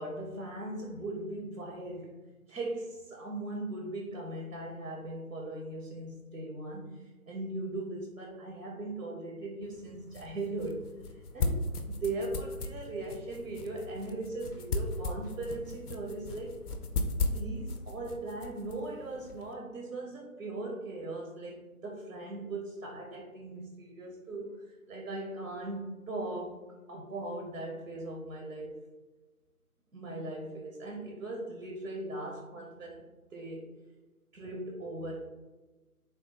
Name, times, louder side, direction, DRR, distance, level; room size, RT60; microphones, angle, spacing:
voice 1, 0.0-16.6 17.2-28.8 29.9-33.0 33.3-33.7 34.3-35.3, right 2 dB, 75° right, 0 dB, 0.8 m, -39 dB
sound 1, 9.6-19.5, left 2 dB, 85° left, 0.6 m, -37 dB
3.6 x 2.3 x 2.7 m, 1.2 s
figure-of-eight pair, 170°, 45 cm